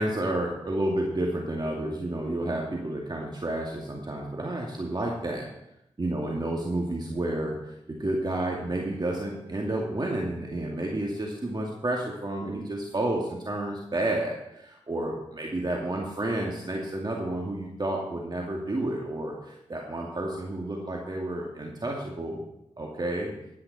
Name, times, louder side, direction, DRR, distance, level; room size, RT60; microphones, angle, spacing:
voice 1, 0.0-5.4 6.0-14.4 14.9-22.4 22.8-23.3, right 1 dB, 40° right, -1 dB, 2.4 m, -30 dB
15.5 x 9.5 x 4.2 m, 0.84 s
cardioid pair, 40°, 12 cm